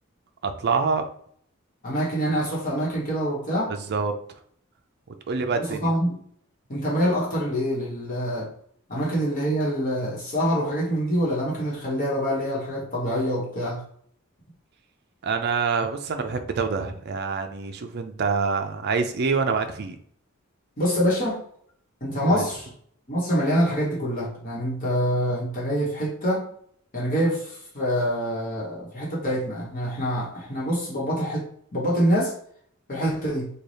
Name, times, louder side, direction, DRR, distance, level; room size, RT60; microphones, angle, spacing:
voice 1, 0.4-1.1 3.7-4.1 5.3-5.9 15.2-20.0 22.2-22.5, right 5 dB, 50° right, 7 dB, 0.4 m, -26 dB
voice 2, 1.8-3.7 5.5-6.2 6.7-8.5 8.9-13.8 20.8-21.4 22.0-22.7 23.1-26.5 26.9-32.3 32.9-33.5, equal, 40° left, -5 dB, 1.1 m, -25 dB
3.3 x 2.3 x 4.0 m, 0.63 s
head